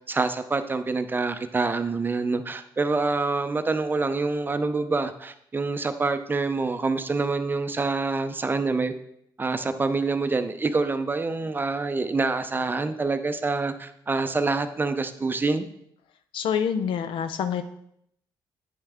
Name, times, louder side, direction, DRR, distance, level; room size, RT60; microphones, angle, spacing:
voice 1, 0.0-8.9 9.4-15.6, right 3 dB, 25° right, 9 dB, 0.5 m, -26 dB
voice 2, 16.3-17.6, left 7 dB, 80° left, 10 dB, 0.6 m, -26 dB
8.7 x 5.5 x 3.6 m, 0.73 s
cardioid pair, 100°, 9 cm